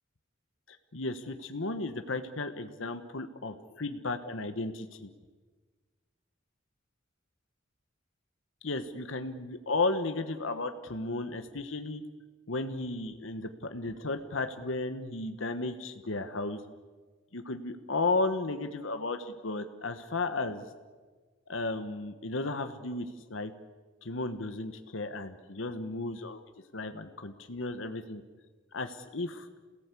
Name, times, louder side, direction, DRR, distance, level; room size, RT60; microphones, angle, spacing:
voice 1, 0.7-5.1 8.6-12.0 12.5-16.6 17.3-20.7 21.5-23.5 24.0-26.4 26.7-28.2 28.7-29.5, left 3 dB, 85° left, 8 dB, 1.3 m, -34 dB
28.0 x 17.5 x 8.4 m, 1.4 s
head